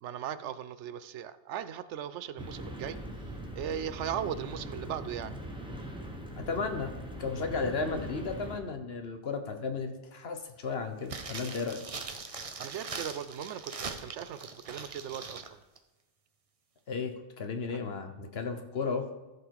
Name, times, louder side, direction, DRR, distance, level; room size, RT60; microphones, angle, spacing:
voice 1, 0.0-3.0 3.5-5.4 12.6-15.6 17.7-17.8, right 9 dB, 80° right, 14 dB, 0.9 m, -38 dB
sound 1, 2.4-8.6, right 1 dB, 5° right, 1.0 m, -41 dB
voice 2, 6.4-6.9 7.2-11.8 16.9-19.1, left 4 dB, 60° left, 7 dB, 1.3 m, -34 dB
sound 2, 11.0-15.5 15.8-15.9, right 4 dB, 35° right, 0.7 m, -41 dB
14.0 x 5.2 x 4.7 m, 1.1 s
omnidirectional pair, 1.2 m